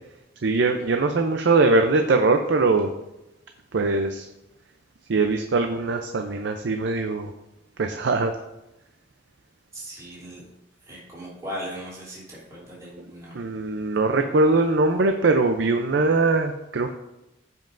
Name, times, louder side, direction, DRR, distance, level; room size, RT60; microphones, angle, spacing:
voice 1, 0.4-2.9 3.7-4.3 5.1-7.3 7.8-8.3 13.3-17.0, right 3 dB, 70° right, 6 dB, 0.5 m, -21 dB
voice 2, 9.7-10.4 10.8-13.4, equal, 20° right, -8 dB, 3.1 m, -38 dB
14.5 x 5.3 x 2.6 m, 0.91 s
head